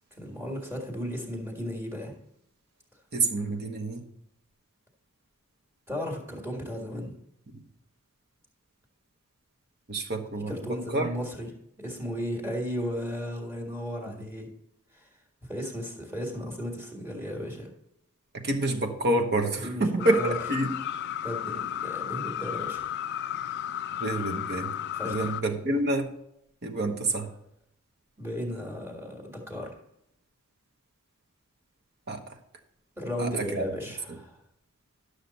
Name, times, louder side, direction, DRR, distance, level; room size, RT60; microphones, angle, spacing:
voice 1, 0.1-2.1 5.9-7.1 10.5-11.5 11.8-14.5 14.9-15.1 15.4-17.7 19.6-19.9 20.2-20.3 21.2-22.9 24.9-25.3 28.2-29.8 33.0-34.4, equal, 10° right, 0 dB, 1.8 m, -35 dB
voice 2, 3.1-4.0 9.9-11.1 14.1-14.2 18.3-20.8 24.0-24.7 25.0-26.1 26.6-27.3 32.1-32.2 33.2-33.6 34.1-34.2, right 2 dB, 45° right, 3 dB, 1.1 m, -28 dB
sound 1, 20.0-25.4, left 10 dB, 50° left, 0.3 m, -33 dB
11.5 x 6.6 x 4.1 m, 0.77 s
head